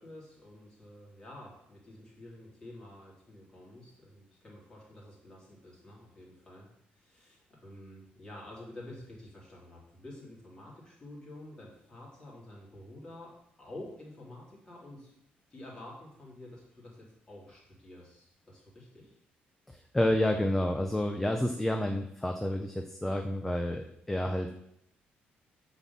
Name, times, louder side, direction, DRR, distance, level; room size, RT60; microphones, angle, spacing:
voice 1, 0.0-6.7 6.9-13.3 13.6-15.2 15.5-19.2, left 1 dB, 20° left, -4 dB, 3.3 m, -49 dB
voice 2, 19.7-24.5, left 1 dB, 5° left, 4 dB, 0.6 m, -30 dB
9.7 x 4.2 x 7.2 m, 0.77 s
cardioid pair, 165°, 3 cm